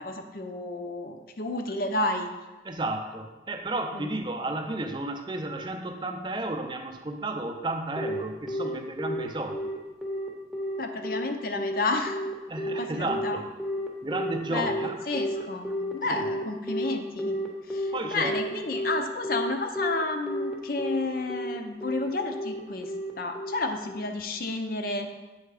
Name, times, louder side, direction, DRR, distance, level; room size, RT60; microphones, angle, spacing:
voice 1, 0.0-2.3 3.9-4.1 10.8-12.2 12.8-13.4 14.5-14.8 15.1-25.1, left 2 dB, 50° left, 5 dB, 0.6 m, -31 dB
voice 2, 2.6-9.7 12.5-13.4 14.0-15.0 16.1-16.3 17.9-18.4, right 2 dB, 25° right, 5 dB, 0.5 m, -32 dB
Telephone, 8.0-24.1, equal, ahead, 0.8 m, -31 dB
7.9 x 3.4 x 4.8 m, 1.1 s
head